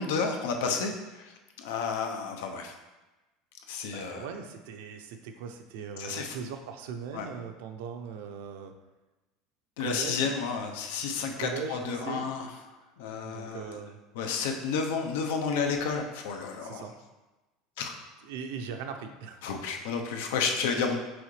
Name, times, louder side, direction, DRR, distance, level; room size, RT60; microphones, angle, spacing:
voice 1, 0.0-1.3 1.6-2.7 3.7-4.3 6.0-6.4 7.1-7.3 9.8-12.5 13.0-13.8 14.1-16.8 17.8-17.9 19.4-21.0, left 5 dB, 85° left, 3 dB, 0.8 m, -31 dB
voice 2, 3.9-8.7 9.8-10.3 11.3-12.2 13.2-14.0 16.6-16.9 18.2-19.4, right 6 dB, 70° right, 6 dB, 0.6 m, -39 dB
6.1 x 4.7 x 3.3 m, 1.1 s
cardioid pair, 175°, 0 cm